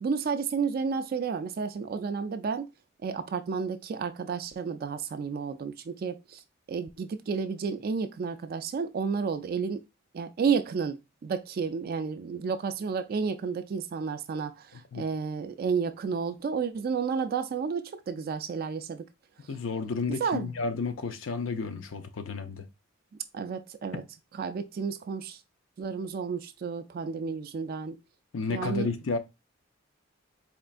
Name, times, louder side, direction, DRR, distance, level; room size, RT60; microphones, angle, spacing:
voice 1, 0.0-2.7 3.0-6.4 6.7-9.8 10.1-19.0 20.2-20.5 23.3-24.0 24.4-25.4 25.8-28.0 28.5-28.9, right 5 dB, 50° right, 0.3 m, -31 dB
voice 2, 19.5-22.7 28.3-29.2, left 4 dB, 80° left, 0.6 m, -32 dB
4.4 x 3.1 x 2.5 m
head